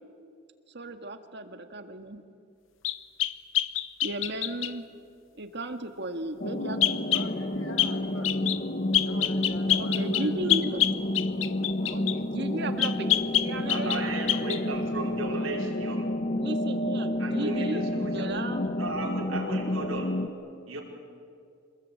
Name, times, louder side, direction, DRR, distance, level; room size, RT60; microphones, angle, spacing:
voice 1, 0.7-2.2 4.0-4.8 5.4-6.8 9.8-10.8 11.9-14.1 16.4-18.6, right 1 dB, 55° right, 7 dB, 1.8 m, -35 dB
sound 1, 2.8-4.8 6.8-7.3 7.8-8.0 8.2-8.6 8.9-12.2 12.8-14.0 14.3-14.6, left 13 dB, 70° left, 0.9 m, -26 dB
sound 2, 6.4-20.3, left 1 dB, 40° left, 1.3 m, -30 dB
voice 2, 7.1-8.3 9.0-10.6 11.8-12.1 13.7-14.1, left 2 dB, 90° left, 3 dB, 3.7 m, -44 dB
voice 3, 13.7-16.1 17.2-18.3 18.7-20.1 20.7-20.8, right 2 dB, 80° right, 0 dB, 4.8 m, -35 dB
26.5 x 20.5 x 8.7 m, 2.3 s
head